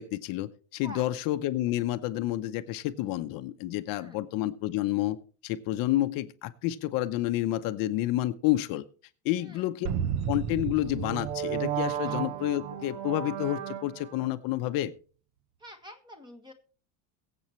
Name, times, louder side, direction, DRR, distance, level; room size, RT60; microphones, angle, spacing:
voice 1, 0.0-5.2 5.4-8.8 9.2-9.9 10.3-14.9, left 15 dB, 55° left, 9 dB, 0.8 m, -29 dB
voice 2, 9.3-9.7 12.0-12.2 15.6-16.5, equal, 10° right, 5 dB, 1.6 m, -47 dB
sound 1, 9.8-14.3, right 9 dB, 45° right, 0.9 m, -32 dB
22.5 x 7.9 x 3.1 m, 0.40 s
cardioid pair, 165°, 41 cm